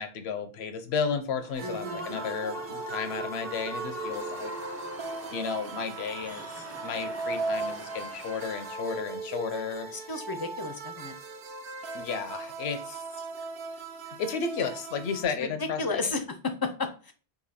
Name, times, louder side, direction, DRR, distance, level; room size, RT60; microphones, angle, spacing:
voice 1, 0.0-4.5 5.3-9.9 11.9-13.0 14.2-16.0, left 5 dB, 90° left, 8 dB, 0.9 m, -33 dB
Human voice / Cheering / Applause, 1.4-9.0, right 1 dB, 20° right, 0.5 m, -40 dB
sound 1, 1.5-15.2, right 3 dB, 70° right, 0.8 m, -38 dB
voice 2, 1.6-2.2 9.9-11.1 15.4-17.1, left 3 dB, 35° left, 7 dB, 0.4 m, -33 dB
3.9 x 2.9 x 4.1 m, 0.38 s
omnidirectional pair, 1.0 m